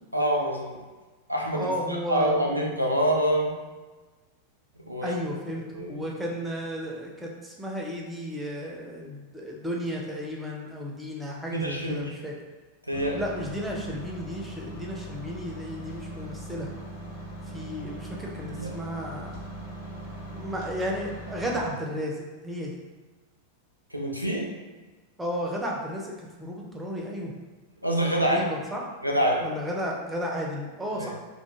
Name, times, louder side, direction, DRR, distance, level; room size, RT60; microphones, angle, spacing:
voice 1, 0.1-0.8 1.3-3.6 4.9-5.2 5.7-6.0 11.5-12.1 12.9-13.2 18.6-18.8 23.9-24.5 27.8-28.4 29.0-29.5 31.0-31.1, right 1 dB, 90° right, 0 dB, 0.4 m, -26 dB
voice 2, 1.5-2.6 5.0-12.3 13.2-16.7 17.5-19.4 20.3-22.7 25.2-27.3 28.2-28.8 29.4-31.2, equal, 5° right, -2 dB, 0.5 m, -33 dB
sound 1, 12.9-21.7, right 1 dB, 50° left, 0.6 m, -40 dB
2.3 x 2.1 x 3.0 m, 1.3 s
figure-of-eight pair, 90°, 0 cm